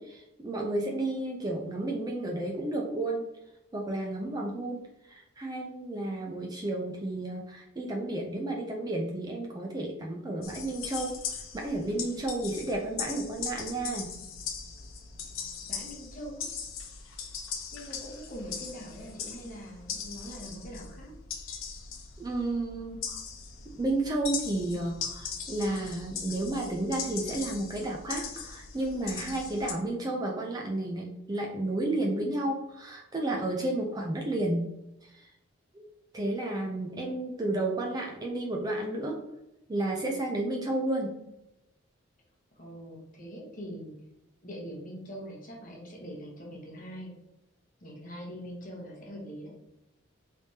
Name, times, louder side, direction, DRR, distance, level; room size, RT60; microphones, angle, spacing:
voice 1, 0.0-3.3 3.7-14.2 22.2-23.2 23.7-34.7 35.0-35.3 35.7-35.8 36.1-39.2 39.7-41.2, right 2 dB, 20° right, 1 dB, 0.3 m, -32 dB
sound 1, 10.4-29.7, left 6 dB, 75° left, 0.5 m, -40 dB
voice 2, 15.6-16.5 17.7-21.1 42.5-43.9 44.4-47.1 47.8-49.5, equal, 40° left, -2 dB, 0.9 m, -43 dB
3.3 x 3.3 x 2.7 m, 0.89 s
head